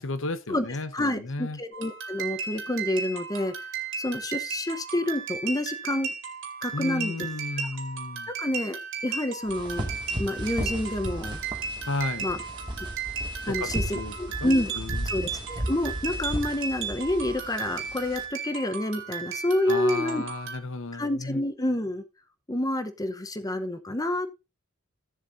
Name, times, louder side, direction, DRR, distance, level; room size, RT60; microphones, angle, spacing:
voice 1, 0.0-1.6 6.7-8.3 11.9-12.3 13.5-14.1 14.4-15.0 19.7-21.4, left 3 dB, 65° left, 1.1 m, -33 dB
voice 2, 0.9-3.7 4.0-6.1 6.6-7.1 8.4-9.9 10.2-11.4 12.2-12.4 13.5-14.7 15.0-20.2 20.9-22.0 22.5-24.3, left 1 dB, 15° left, 0.9 m, -28 dB
sound 1, 1.7-20.6, right 5 dB, 60° right, 2.5 m, -35 dB
sound 2, 9.5-18.3, right 1 dB, 20° right, 2.1 m, -35 dB
15.5 x 7.4 x 2.7 m
head